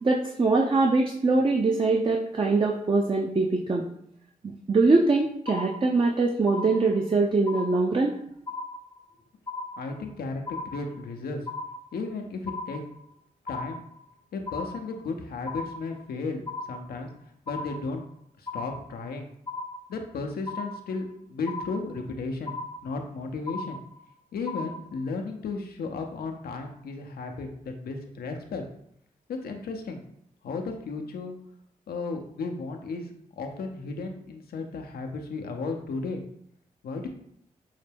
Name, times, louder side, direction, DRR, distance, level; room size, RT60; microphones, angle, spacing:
voice 1, 0.0-3.9 4.4-8.2, right 3 dB, 35° right, 1 dB, 0.5 m, -23 dB
sound 1, 5.5-6.1 6.5-7.1 7.5-8.1 8.5-9.1 9.5-10.1 10.5-11.1 11.5-12.1 12.5-13.1 13.5-14.1 14.5-15.1 15.5-16.1 16.5-17.1 17.5-18.1 18.5-19.1 19.5-20.1 20.5-21.1 21.5-22.1 22.5-23.1 23.5-24.1 24.5-25.1, left 3 dB, 25° left, 0.4 m, -37 dB
voice 2, 9.8-11.4 11.9-12.8 13.4-13.8 14.3-16.4 16.7-17.1 17.5-18.1 18.4-19.3 19.9-23.8 24.3-28.6 29.3-30.0 30.4-31.3 31.9-36.2 36.8-37.1, left 3 dB, 85° left, 4 dB, 0.6 m, -34 dB
5.5 x 2.2 x 3.3 m, 0.71 s
cardioid pair, 45°, 15 cm